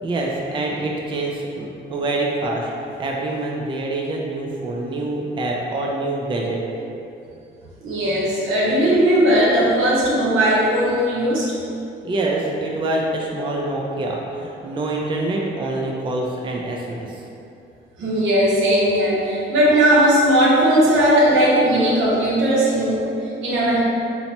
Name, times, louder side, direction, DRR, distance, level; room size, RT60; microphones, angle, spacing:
voice 1, 0.0-2.7 3.0-6.6 12.0-17.2, right 2 dB, 25° right, -1 dB, 0.4 m, -25 dB
voice 2, 7.8-11.5 18.0-23.1 23.4-23.8, right 1 dB, 80° right, -6 dB, 0.8 m, -17 dB
4.1 x 2.0 x 2.9 m, 2.7 s
cardioid pair, 90°, 20 cm